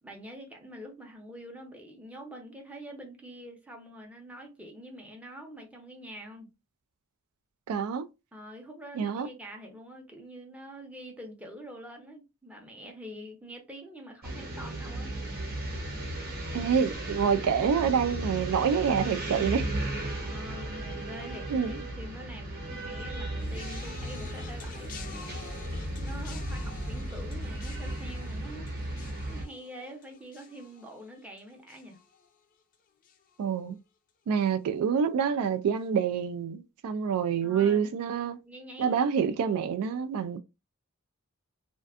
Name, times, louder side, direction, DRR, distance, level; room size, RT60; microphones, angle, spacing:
voice 1, 0.0-6.5 8.3-15.2 20.2-28.7 29.3-32.0 37.4-37.9 38.5-39.1, equal, 5° right, 0.6 m, -45 dB
voice 2, 7.7-8.1 9.0-9.3 16.5-19.7 21.5-21.8 33.4-33.8 34.3-38.4 38.8-40.4, right 7 dB, 80° right, 0.3 m, -27 dB
sound 1, 14.2-29.5, right 1 dB, 45° right, 0.8 m, -35 dB
sound 2, 23.4-32.7 33.0-33.6 34.4-34.5, left 6 dB, 35° left, 0.4 m, -49 dB
2.5 x 2.2 x 2.3 m
head